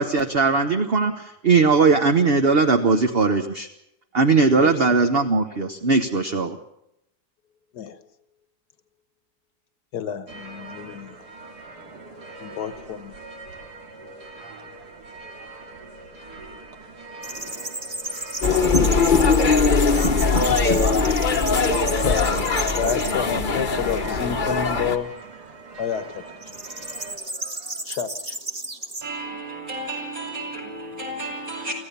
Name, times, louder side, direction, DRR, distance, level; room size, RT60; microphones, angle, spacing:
voice 1, 0.0-3.7 4.1-6.6, right 4 dB, 40° right, 1.2 m, -19 dB
voice 2, 4.6-5.0 7.7-8.0 9.9-11.3 12.4-13.2 22.0-22.2 22.8-25.1 25.8-26.4 27.9-28.4, left 8 dB, 85° left, 1.7 m, -29 dB
sound 1, 10.3-27.2, right 3 dB, 85° right, 2.8 m, -42 dB
sound 2, 17.2-23.1 23.7-24.2 26.4-29.0, right 1 dB, 25° right, 1.8 m, -33 dB
sound 3, 18.4-25.0, left 4 dB, 35° left, 1.1 m, -20 dB
voice 3, 29.0-31.7, right 2 dB, 60° right, 5.8 m, -32 dB
25.0 x 15.5 x 6.9 m
omnidirectional pair, 1.7 m